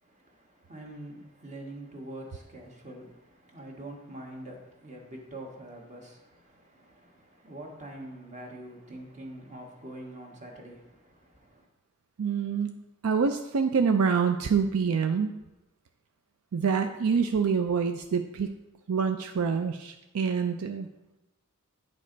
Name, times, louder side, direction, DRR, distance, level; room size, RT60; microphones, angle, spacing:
voice 1, 0.0-11.7, right 1 dB, 35° right, 1.5 m, -45 dB
voice 2, 12.2-12.7 13.0-15.3 16.5-18.5 18.9-20.9, right 6 dB, 70° right, 0.4 m, -26 dB
9.6 x 5.3 x 3.9 m
head